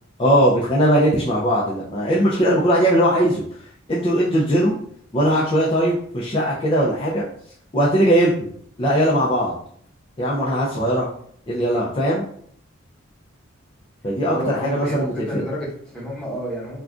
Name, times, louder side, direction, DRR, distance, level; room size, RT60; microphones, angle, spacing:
voice 1, 0.2-3.4 3.9-4.7 5.1-7.2 7.7-8.5 8.8-9.5 10.2-11.1 11.5-12.2 14.0-15.4, equal, 25° left, -6 dB, 0.4 m, -19 dB
voice 2, 14.3-16.8, left 1 dB, 5° left, -7 dB, 1.0 m, -30 dB
2.4 x 2.2 x 3.6 m, 0.62 s
head